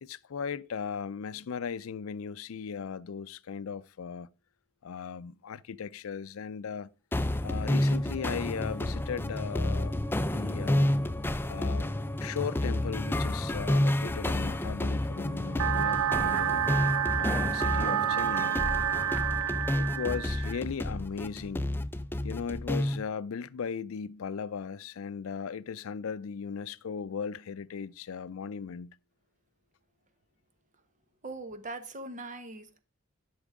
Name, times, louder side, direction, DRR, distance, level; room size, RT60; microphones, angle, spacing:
voice 1, 0.0-4.3 4.8-6.9 7.4-10.0 10.3-10.9 11.5-11.9 12.2-16.7 17.2-18.6 19.7-21.6 22.2-29.0, left 6 dB, 80° left, 0.4 m, -37 dB
sound 1, 7.1-23.0, left 1 dB, 10° left, 0.4 m, -30 dB
sound 2, 15.6-20.6, right 9 dB, 75° right, 0.4 m, -29 dB
voice 2, 31.2-32.8, right 2 dB, 40° right, 1.1 m, -41 dB
12.0 x 6.1 x 3.6 m
head